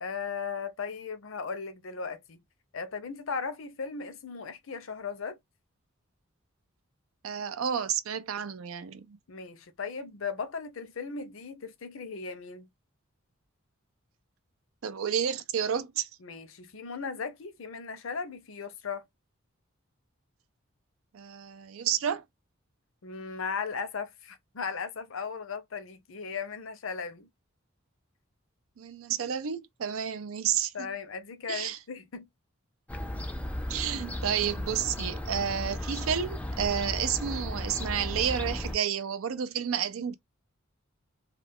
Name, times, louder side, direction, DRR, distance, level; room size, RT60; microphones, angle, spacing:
voice 1, 0.0-2.4 2.7-5.4 9.3-12.7 16.2-19.0 23.0-27.3 30.7-32.3, left 5 dB, 75° left, 0.6 m, -37 dB
voice 2, 7.2-9.2 14.8-16.1 21.1-22.2 28.8-30.9 31.5-31.8 33.7-40.1, right 8 dB, 85° right, 0.5 m, -31 dB
Fowl / Gull seagull, 32.9-38.8, left 1 dB, 5° left, 0.3 m, -35 dB
2.3 x 2.2 x 3.4 m
head